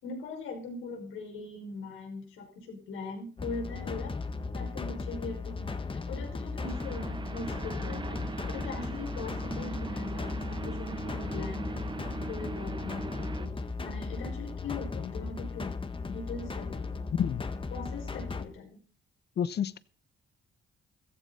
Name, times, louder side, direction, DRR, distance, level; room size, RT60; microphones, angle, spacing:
voice 1, 0.0-4.2 4.5-11.7 12.3-13.5 13.8-15.8 16.0-17.0 17.7-18.8, left 3 dB, 85° left, 5.8 m, -41 dB
sound 1, 3.4-18.5, left 4 dB, 25° left, 1.6 m, -36 dB
sound 2, 6.6-13.5, right 4 dB, 25° right, 1.0 m, -40 dB
voice 2, 19.4-19.8, left 8 dB, 55° left, 0.9 m, -29 dB
15.5 x 15.0 x 4.2 m
cardioid pair, 90°, 20 cm